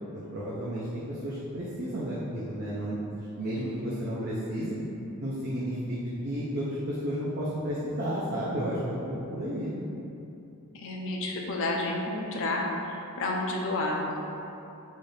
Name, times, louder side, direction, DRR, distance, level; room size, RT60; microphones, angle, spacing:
voice 1, 0.1-4.7 5.2-6.0 6.2-9.7, equal, 50° right, -8 dB, 0.5 m, -32 dB
voice 2, 10.7-12.6 13.2-14.2, left 2 dB, 60° left, -1 dB, 0.5 m, -30 dB
4.1 x 2.5 x 3.2 m, 2.8 s
head